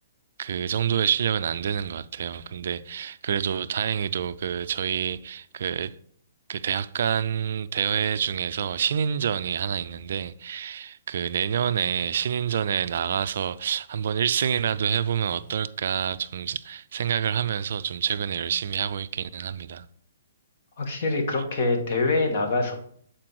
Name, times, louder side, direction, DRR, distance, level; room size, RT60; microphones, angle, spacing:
voice 1, 0.4-5.9 6.5-19.9, right 8 dB, 60° right, 0.3 m, -27 dB
voice 2, 20.8-22.7, left 3 dB, 55° left, 1.5 m, -24 dB
7.5 x 4.3 x 4.6 m
hypercardioid pair, 130°, 0 cm